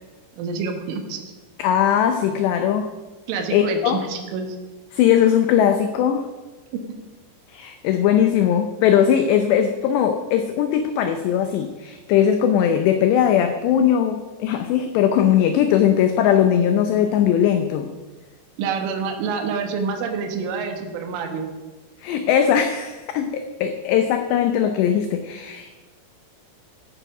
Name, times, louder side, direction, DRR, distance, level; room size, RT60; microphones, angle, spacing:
voice 1, 0.4-1.3 3.3-4.5 18.6-21.5, right 5 dB, 75° right, 4 dB, 3.7 m, -27 dB
voice 2, 1.6-2.9 3.5-4.0 4.9-6.3 7.5-17.9 22.0-25.7, left 9 dB, 85° left, 7 dB, 2.4 m, -19 dB
14.0 x 9.2 x 5.9 m, 1.2 s
omnidirectional pair, 5.9 m